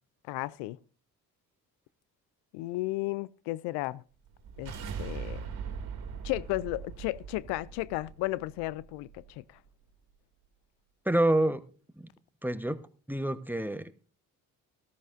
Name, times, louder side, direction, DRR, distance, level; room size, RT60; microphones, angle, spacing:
voice 1, 0.3-0.8 2.5-4.0 4.6-4.7 5.0-5.4 6.2-9.4, left 19 dB, 75° left, 0.5 m, -34 dB
sound 1, 4.2-9.3, right 6 dB, 60° right, 2.3 m, -41 dB
voice 2, 11.0-11.6 12.0-12.1 12.4-12.8 13.1-14.0, right 1 dB, 5° right, 1.0 m, -27 dB
14.0 x 13.5 x 2.6 m
hypercardioid pair, 60°, 41 cm